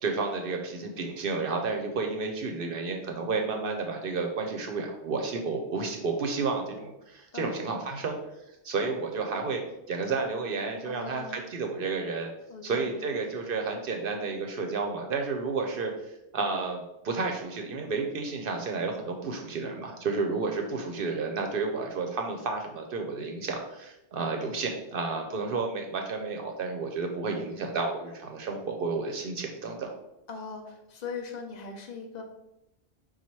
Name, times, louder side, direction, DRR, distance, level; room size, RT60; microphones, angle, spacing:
voice 1, 0.0-8.2 8.6-9.6 9.9-12.3 12.6-15.9 16.3-29.9, right 4 dB, 60° right, 3 dB, 0.7 m, -31 dB
voice 2, 10.8-11.5 12.5-13.1 30.3-32.2, left 5 dB, 45° left, 3 dB, 0.7 m, -40 dB
4.1 x 2.3 x 4.4 m, 0.89 s
omnidirectional pair, 1.1 m